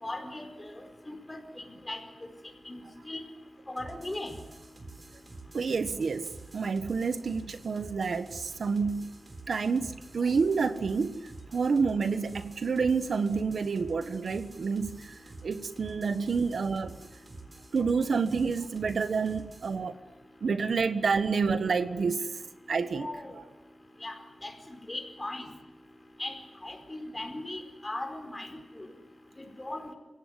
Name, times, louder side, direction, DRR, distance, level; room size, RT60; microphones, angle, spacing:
voice 1, 0.0-2.0 2.7-3.2 3.7-4.3 23.0-23.3 24.0-24.2 24.4-25.4 26.2-26.3 26.6-28.9 29.4-29.9, left 1 dB, 20° left, 5 dB, 4.7 m, -38 dB
sound 1, 3.8-19.8, right 3 dB, 40° right, 3.7 m, -49 dB
voice 2, 5.5-6.3 6.5-9.1 9.5-11.2 11.5-15.1 15.4-16.9 17.7-20.0 20.4-22.3 22.7-23.1 23.3-23.4, right 5 dB, 70° right, 10 dB, 1.4 m, -28 dB
29.5 x 17.5 x 9.5 m, 1.1 s
wide cardioid pair, 135°, 0 cm